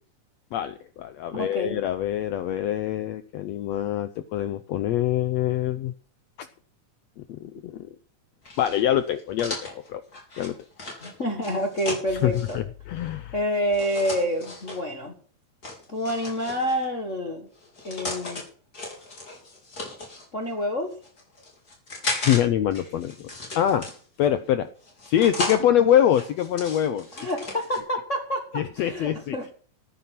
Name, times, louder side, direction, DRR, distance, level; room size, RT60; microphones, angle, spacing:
voice 1, 0.5-5.9 6.4-6.5 7.3-7.9 8.6-10.0 10.4-10.6 12.2-13.3 22.2-23.3 23.5-23.9 24.2-24.7 25.1-27.1 28.5-29.4, left 11 dB, 80° left, 11 dB, 1.5 m, -24 dB
voice 2, 1.3-1.8 11.0-12.6 13.3-15.1 15.9-17.5 17.8-18.4 20.3-20.9 25.2-25.3 27.1-29.5, equal, 45° left, 2 dB, 0.9 m, -28 dB
sound 1, 8.4-12.6 13.7-14.8 15.6-16.8 17.6-18.4 18.7-20.3 20.9-22.4 22.7-24.2 24.8-25.6 26.1-27.8, left 2 dB, 25° left, 4.0 m, -35 dB
13.5 x 9.4 x 5.9 m, 0.43 s
omnidirectional pair, 3.8 m